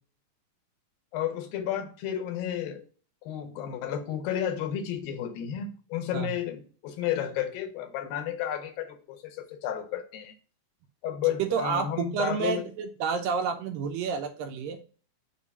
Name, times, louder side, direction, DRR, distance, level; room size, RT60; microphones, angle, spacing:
voice 1, 1.1-2.8 3.2-10.3 11.0-12.7, left 10 dB, 80° left, 6 dB, 2.5 m, -32 dB
voice 2, 11.4-14.8, right 6 dB, 80° right, 6 dB, 2.1 m, -29 dB
6.9 x 2.6 x 5.3 m, 0.40 s
omnidirectional pair, 4.3 m